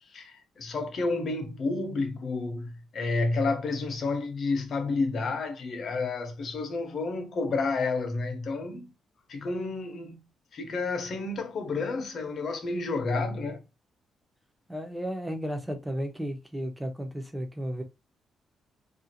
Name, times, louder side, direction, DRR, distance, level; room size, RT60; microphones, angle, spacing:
voice 1, 0.1-8.9 9.3-10.2 10.5-13.6, left 3 dB, 55° left, 0.7 m, -30 dB
voice 2, 14.7-17.8, equal, 5° right, 0.6 m, -34 dB
2.5 x 2.4 x 2.8 m
cardioid pair, 120°, 0 cm